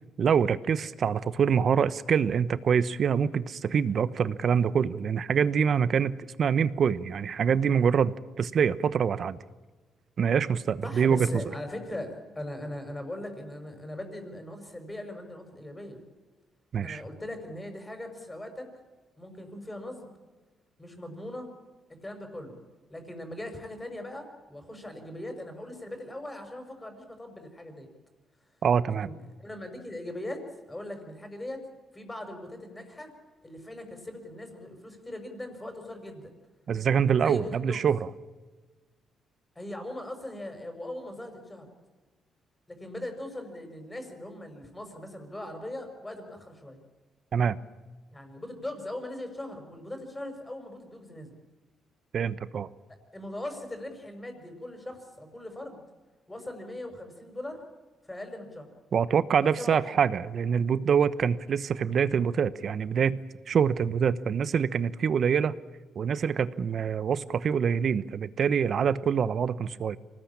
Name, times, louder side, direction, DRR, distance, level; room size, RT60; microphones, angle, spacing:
voice 1, 0.2-9.4 10.2-11.3 16.7-17.0 28.6-29.1 36.7-38.0 47.3-47.6 52.1-52.7 58.9-63.2 63.5-65.5 66.0-70.0, right 7 dB, 55° right, 16 dB, 1.0 m, -25 dB
voice 2, 10.8-16.0 16.8-18.7 19.2-20.1 20.8-21.5 21.9-22.6 22.9-27.9 29.0-31.6 31.9-33.1 33.4-36.3 37.2-37.9 39.6-41.7 42.7-46.8 48.1-51.3 53.1-55.8 56.3-57.6 58.0-58.7 59.4-60.1, left 1 dB, 15° left, 6 dB, 5.9 m, -40 dB
25.0 x 19.0 x 8.7 m, 1.3 s
cardioid pair, 90°, 0 cm